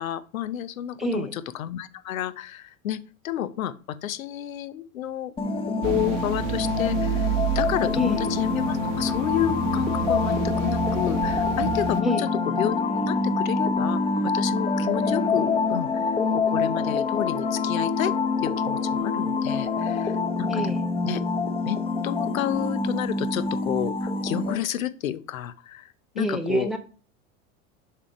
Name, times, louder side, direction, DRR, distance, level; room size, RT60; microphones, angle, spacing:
voice 1, 0.0-5.3 5.8-18.1 18.4-20.6 21.0-21.2 21.7-26.7, left 11 dB, 85° left, 15 dB, 0.7 m, -31 dB
voice 2, 1.0-1.4 8.0-8.2 12.0-12.3 20.5-20.8 26.2-26.8, equal, ahead, 8 dB, 1.1 m, -27 dB
sound 1, 5.4-24.6, left 4 dB, 15° left, 0.8 m, -26 dB
sound 2, 5.8-12.0, right 8 dB, 65° right, 1.1 m, -30 dB
6.5 x 3.7 x 4.9 m, 0.38 s
hypercardioid pair, 90°, 40 cm